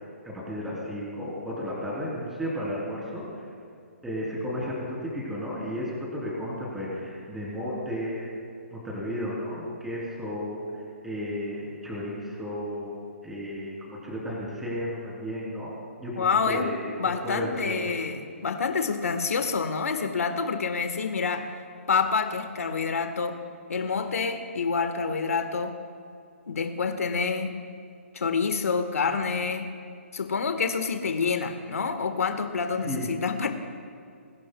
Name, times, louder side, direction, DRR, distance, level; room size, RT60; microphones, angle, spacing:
voice 1, 0.2-3.5 4.0-8.3 8.7-12.9 13.2-15.7 16.0-17.0 17.2-17.9 32.8-33.1, equal, 5° right, -7 dB, 3.3 m, -33 dB
voice 2, 16.2-16.7 17.0-21.5 21.9-23.4 23.7-25.7 26.5-27.5 28.1-29.7 30.1-33.5, left 5 dB, 85° left, 6 dB, 1.3 m, -27 dB
23.0 x 16.5 x 2.3 m, 2.4 s
hypercardioid pair, 165°, 8 cm